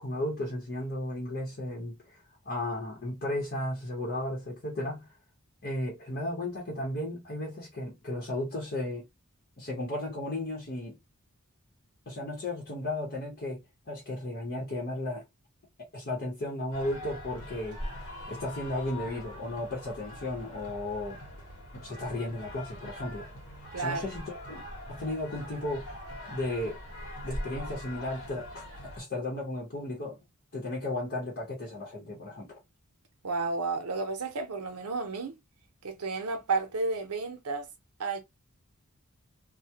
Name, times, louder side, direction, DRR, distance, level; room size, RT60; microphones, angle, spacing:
voice 1, 0.0-2.2 2.4-5.1 5.6-9.1 9.6-11.0 12.1-15.2 15.9-17.8 18.3-21.2 21.7-23.3 23.6-25.9 26.3-26.8 27.2-30.2 30.5-32.6, left 1 dB, 45° left, 0.8 m, -35 dB
sound 1, 16.7-29.0, left 1 dB, 70° left, 1.0 m, -42 dB
voice 2, 23.7-24.2 33.2-35.3 35.8-37.7 38.0-38.2, right 3 dB, 75° right, 0.7 m, -32 dB
2.2 x 2.1 x 2.7 m
head